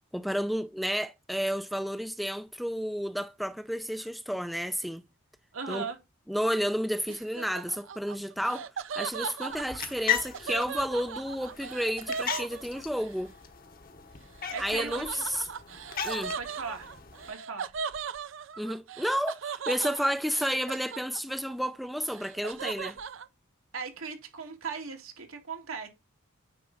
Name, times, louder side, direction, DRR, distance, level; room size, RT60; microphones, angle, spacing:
voice 1, 0.1-5.0 5.7-5.9 6.3-8.7 9.0-13.3 14.6-15.5 16.0-16.4 18.6-23.0, equal, ahead, 0.3 m, -31 dB
voice 2, 5.5-6.0 14.5-15.2 16.4-16.9 17.3-17.7 23.7-25.9, right 5 dB, 85° right, 2.0 m, -38 dB
Laughter, 7.1-13.1 14.5-21.5 21.8-23.3, right 6 dB, 65° right, 0.5 m, -38 dB
sound 1, 9.5-17.3, left 8 dB, 45° left, 1.0 m, -37 dB
9.5 x 4.5 x 3.8 m
head